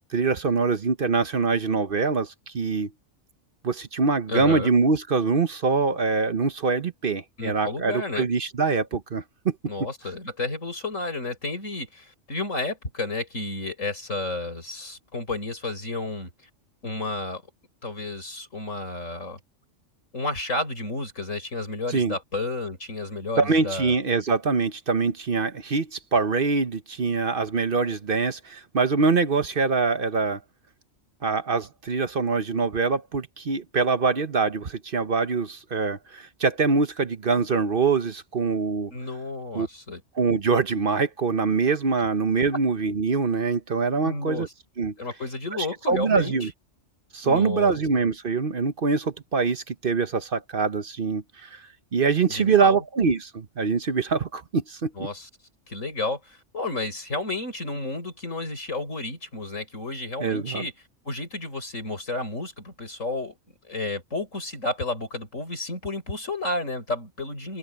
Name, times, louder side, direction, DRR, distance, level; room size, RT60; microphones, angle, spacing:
voice 1, 0.1-2.9 3.6-9.5 21.9-22.2 23.4-30.4 31.2-38.9 39.5-39.7 40.2-44.5 44.8-44.9 45.9-46.5 47.1-51.6 51.9-55.1 60.2-60.6, right 4 dB, 50° right, 1.1 m, -24 dB
voice 2, 4.3-4.7 7.4-8.3 9.6-16.3 16.8-17.4 17.8-19.4 20.1-23.9 38.9-40.0 44.0-44.5 45.0-46.5 47.2-47.7 52.3-52.8 55.0-55.3 55.7-60.7 61.0-63.3 63.7-67.6, left 2 dB, 85° left, 6.7 m, -31 dB
open air
omnidirectional pair, 1.3 m